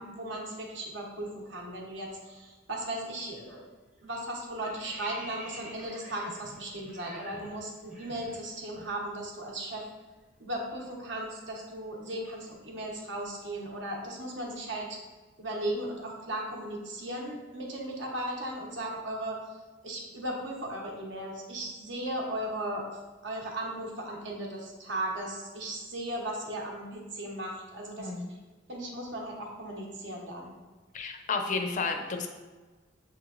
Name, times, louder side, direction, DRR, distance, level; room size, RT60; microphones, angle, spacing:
voice 1, 0.0-3.7 4.0-9.9 10.4-14.9 15.4-19.4 19.8-28.1 28.7-30.5, right 1 dB, 65° right, -1 dB, 0.9 m, -36 dB
sound 1, 3.4-3.7 4.0-8.9 9.2-9.4 9.7-13.7, right 1 dB, 40° right, 1.0 m, -49 dB
voice 2, 28.0-28.3 30.9-32.3, left 4 dB, 40° left, 5 dB, 0.4 m, -31 dB
6.7 x 3.1 x 2.4 m, 1.3 s
head